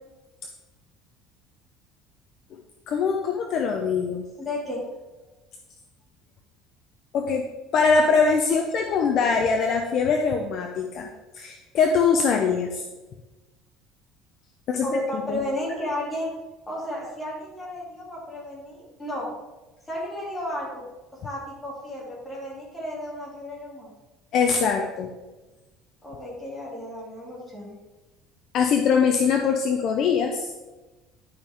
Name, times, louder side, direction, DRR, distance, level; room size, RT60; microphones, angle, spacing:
voice 1, 2.9-4.2 7.1-7.4 7.7-11.1 11.4-12.8 14.7-14.9 15.1-15.4 24.3-25.1 28.5-30.5, left 5 dB, 40° left, 3 dB, 0.6 m, -22 dB
voice 2, 4.4-4.8 14.8-16.3 16.7-19.3 19.9-20.8 21.2-23.9 26.0-27.7, left 1 dB, 10° left, -5 dB, 2.6 m, -33 dB
11.5 x 5.4 x 3.5 m, 1.1 s
cardioid pair, 175°, 0 cm